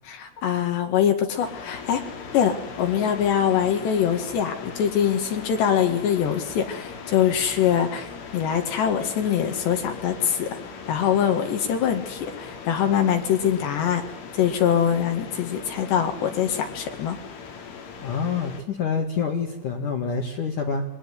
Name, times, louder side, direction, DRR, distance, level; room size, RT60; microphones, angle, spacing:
voice 1, 0.1-2.0 2.3-8.1 8.3-10.5 10.9-14.0 14.3-17.2, left 9 dB, 70° left, 5 dB, 4.0 m, -23 dB
sound 1, 1.4-18.6, left 5 dB, 85° left, 5.6 m, -39 dB
voice 2, 18.0-20.9, left 5 dB, 50° left, 2 dB, 2.9 m, -27 dB
24.0 x 18.5 x 9.6 m, 0.86 s
omnidirectional pair, 5.4 m